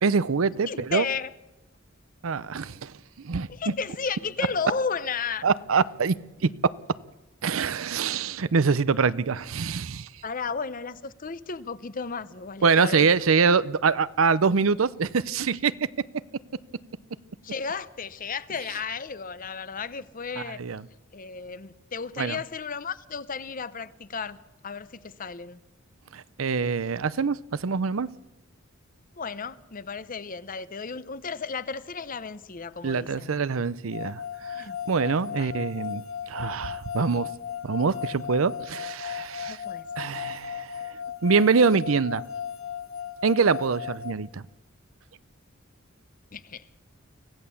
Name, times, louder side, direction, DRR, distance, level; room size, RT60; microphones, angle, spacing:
voice 1, 0.0-1.0 2.2-2.9 3.2-3.7 5.4-6.2 6.4-6.5 7.4-10.1 12.6-15.7 20.4-20.8 22.2-22.4 26.1-28.1 32.8-34.2 34.6-36.0 36.3-37.3 37.6-39.6 40.0-40.8 41.2-42.2 43.2-44.4, right 5 dB, 85° right, 0.6 m, -24 dB
voice 2, 0.7-1.3 3.5-5.5 10.2-13.1 17.4-20.6 21.1-24.4 24.6-25.6 29.2-33.3 34.6-34.8 35.3-35.6 39.5-39.9 46.3-46.6, left 5 dB, 40° left, 0.8 m, -33 dB
sound 1, 33.9-44.1, left 8 dB, 75° left, 1.0 m, -36 dB
25.0 x 16.0 x 7.0 m
head